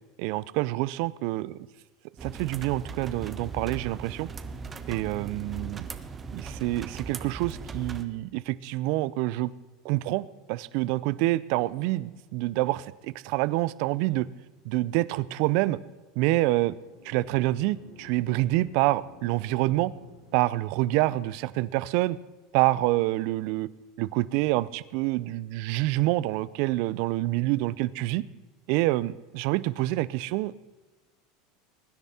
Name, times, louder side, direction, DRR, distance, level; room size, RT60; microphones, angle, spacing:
voice 1, 0.2-1.6 2.2-4.3 4.9-5.8 6.3-9.5 9.8-14.3 14.6-15.8 16.2-16.7 17.0-19.9 20.3-22.2 22.5-23.7 24.0-28.2 28.7-30.5, right 18 dB, 65° right, 19 dB, 0.6 m, -27 dB
sound 1, 2.2-8.0, right 5 dB, 25° right, 1.3 m, -38 dB
sound 2, 16.3-21.2, left 3 dB, 90° left, 3.3 m, -52 dB
22.5 x 10.0 x 4.4 m, 1.2 s
hypercardioid pair, 100°, 0 cm